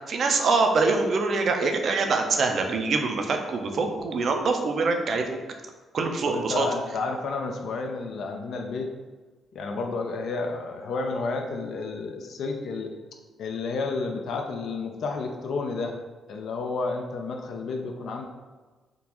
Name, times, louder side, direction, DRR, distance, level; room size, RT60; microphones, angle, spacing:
voice 1, 0.1-5.4 5.9-6.7, right 4 dB, 55° right, 4 dB, 0.5 m, -24 dB
voice 2, 6.2-8.9 9.5-12.9 13.4-15.9 16.3-18.3, left 3 dB, 70° left, 3 dB, 0.3 m, -31 dB
3.6 x 2.4 x 2.9 m, 1.3 s
cardioid pair, 90°, 0 cm